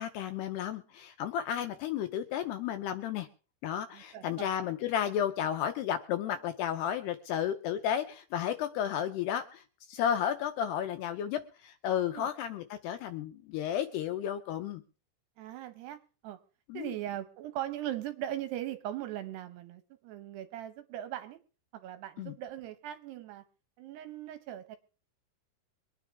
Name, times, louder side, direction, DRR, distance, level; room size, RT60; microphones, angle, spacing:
voice 1, 0.0-3.3 3.6-14.8 16.7-17.0 22.2-22.3, left 9 dB, 80° left, 9 dB, 2.5 m, -33 dB
voice 2, 3.9-4.5 12.1-12.3 15.4-16.0 16.2-16.4 16.7-21.4 21.7-23.4 23.8-24.8, right 12 dB, 75° right, 10 dB, 2.7 m, -39 dB
24.0 x 9.7 x 3.5 m, 0.37 s
omnidirectional pair, 5.4 m